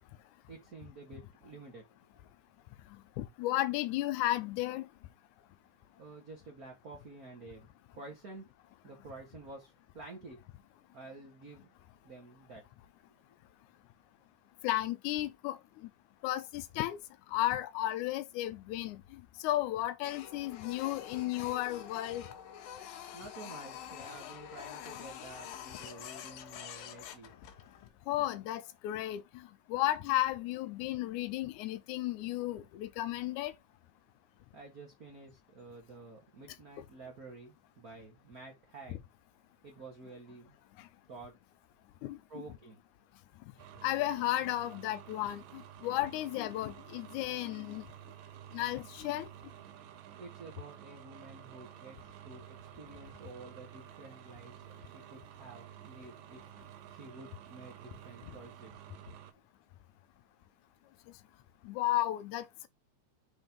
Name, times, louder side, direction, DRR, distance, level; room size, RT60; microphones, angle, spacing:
voice 1, 0.5-1.8 6.0-8.5 8.8-10.4 10.9-11.7 12.0-12.6 23.1-27.4 34.5-39.0 39.6-40.6 41.1-41.4 42.3-42.8 50.2-52.0 52.2-56.4 56.9-58.7, right 3 dB, 45° right, 1.2 m, -50 dB
voice 2, 3.2-4.9 14.6-15.9 16.2-17.0 17.3-22.3 28.1-33.5 42.0-42.2 43.8-47.9 48.5-49.3 61.7-62.7, left 15 dB, 75° left, 2.0 m, -34 dB
Printer, 20.0-27.9, left 9 dB, 90° left, 2.8 m, -47 dB
sound 1, 43.6-59.3, right 11 dB, 80° right, 2.5 m, -52 dB
6.1 x 4.0 x 5.2 m
omnidirectional pair, 4.0 m